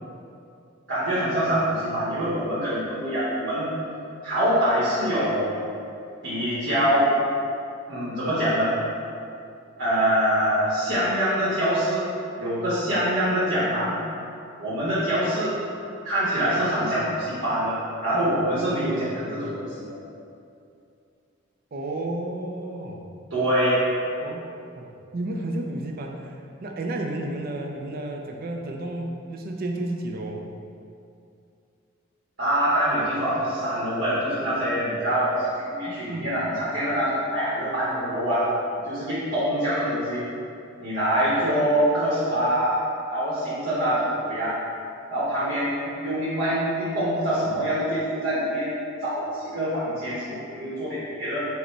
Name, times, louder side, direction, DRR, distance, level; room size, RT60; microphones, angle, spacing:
voice 1, 0.9-3.7 4.2-5.6 6.2-7.1 7.9-8.7 9.8-12.1 12.4-14.0 14.6-15.6 16.0-17.7 18.0-20.0 23.3-23.8 32.4-38.5 38.8-40.2 40.8-44.6 45.1-51.5, equal, 65° right, -11 dB, 1.0 m, -24 dB
voice 2, 21.7-23.0 24.2-24.4 24.7-24.9 25.1-30.5 35.9-36.3, right 1 dB, 45° right, 2 dB, 0.4 m, -32 dB
4.9 x 2.1 x 4.4 m, 2.5 s
head